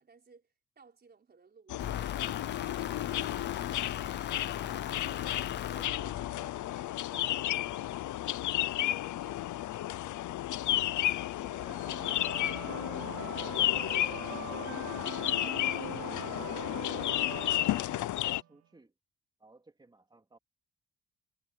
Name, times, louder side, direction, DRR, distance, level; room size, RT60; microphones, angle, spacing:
voice 1, 0.0-2.0 2.3-4.3 4.6-4.9 5.7-6.2 7.1-8.2 8.6-9.5, right 4 dB, 35° right, 4.6 m, -60 dB
sound 1, 1.7-18.4, left 14 dB, 90° left, 0.7 m, -33 dB
sound 2, 1.8-6.7, left 9 dB, 40° left, 0.5 m, -40 dB
voice 2, 6.3-6.7 15.6-18.9 19.4-20.4, right 2 dB, 15° right, 3.4 m, -61 dB
sound 3, 11.5-18.5, right 10 dB, 60° right, 0.8 m, -44 dB
wide cardioid pair, 165°, 29 cm